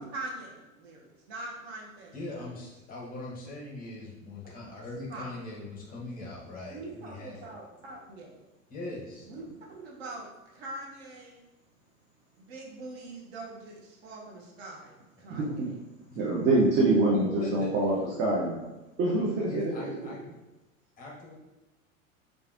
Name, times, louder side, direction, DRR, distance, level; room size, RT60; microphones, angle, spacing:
voice 1, 0.0-2.5 5.1-5.3 6.7-8.4 9.3-9.4 9.7-11.4 12.4-14.9 15.2-15.7, right 2 dB, 50° right, -2 dB, 0.9 m, -43 dB
voice 2, 2.1-7.4 8.7-9.3 16.1-16.4 16.9-17.7 19.4-20.3 21.0-21.4, left 2 dB, 20° left, -3 dB, 0.8 m, -40 dB
voice 3, 15.3-15.7 16.2-18.6 19.0-19.7, right 2 dB, 25° right, -3 dB, 0.5 m, -25 dB
4.7 x 2.5 x 2.4 m, 1.0 s
figure-of-eight pair, 85°, 41 cm